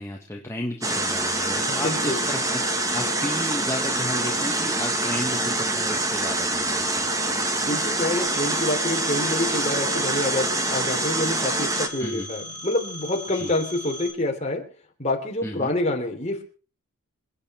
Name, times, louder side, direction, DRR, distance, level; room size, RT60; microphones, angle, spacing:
voice 1, 0.0-7.1 12.0-12.3 13.3-13.5 15.4-15.7, left 1 dB, 10° left, 0 dB, 1.4 m, -33 dB
sound 1, 0.8-11.9, right 2 dB, 15° right, 1.5 m, -25 dB
voice 2, 1.7-2.2 7.7-14.6 15.0-16.4, left 1 dB, 30° left, 2 dB, 3.2 m, -27 dB
Telephone, 8.3-14.1, equal, 80° right, 4.9 m, -38 dB
27.5 x 9.2 x 4.4 m, 0.40 s
head